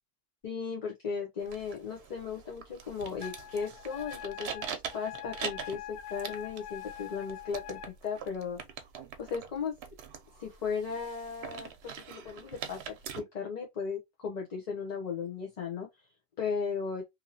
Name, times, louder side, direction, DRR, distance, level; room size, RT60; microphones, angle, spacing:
voice 1, 0.4-8.6 9.2-9.7 10.4-15.9 16.4-17.0, left 6 dB, 45° left, 0.7 m, -36 dB
sound 1, 1.4-13.2, right 7 dB, 75° right, 0.8 m, -44 dB
Wind instrument woodwind instrument, 3.2-7.9, left 12 dB, 80° left, 0.8 m, -44 dB
2.8 x 2.7 x 2.7 m
omnidirectional pair, 1.1 m